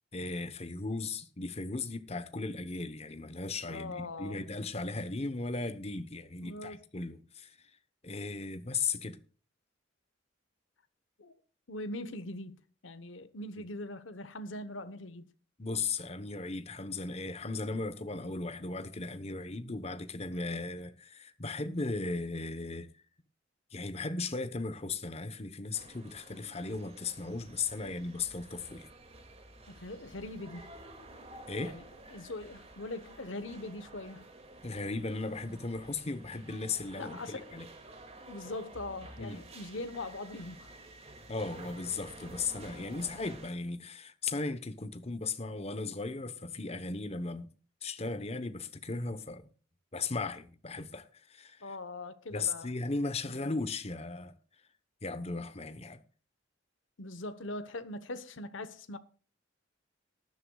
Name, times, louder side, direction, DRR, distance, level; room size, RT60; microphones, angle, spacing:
voice 1, 0.1-7.6 8.0-9.2 15.6-22.9 23.7-28.9 31.5-31.8 34.6-37.7 39.2-39.5 41.3-47.5 47.8-49.5 49.9-51.7 52.3-54.3 55.0-56.0, left 3 dB, 35° left, 1.0 m, -37 dB
voice 2, 3.7-4.4 6.4-6.8 11.2-11.3 11.7-15.3 27.8-28.0 29.7-30.7 31.6-31.8 32.1-34.3 37.0-37.5 38.3-40.7 51.6-52.7 53.2-53.5 57.0-59.0, left 2 dB, 80° left, 1.1 m, -41 dB
sound 1, 25.7-43.5, right 2 dB, 30° right, 2.3 m, -51 dB
19.0 x 11.5 x 2.4 m
head